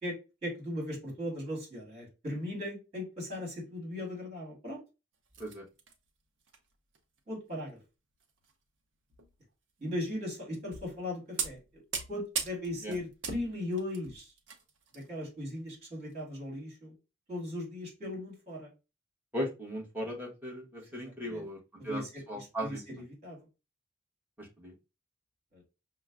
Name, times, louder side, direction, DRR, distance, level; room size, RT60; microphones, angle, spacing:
voice 1, 0.0-4.8 7.3-7.8 9.8-11.8 12.1-14.3 14.9-16.9 17.3-18.7 20.9-21.4 21.8-23.4 25.5-25.6, left 1 dB, 35° right, -3 dB, 2.2 m, -38 dB
sound 1, 5.3-5.9 6.4-6.6 6.9-7.2 8.2-8.5 9.1-9.3 10.1-10.2 10.7-11.0 11.4-15.1 15.3-15.5 16.1-16.2, right 6 dB, 70° right, 0.7 m, -39 dB
voice 2, 19.3-21.6 21.8-22.0 22.3-22.8 24.4-24.7, equal, 10° right, -2 dB, 1.3 m, -37 dB
5.8 x 2.2 x 2.4 m, 0.28 s
head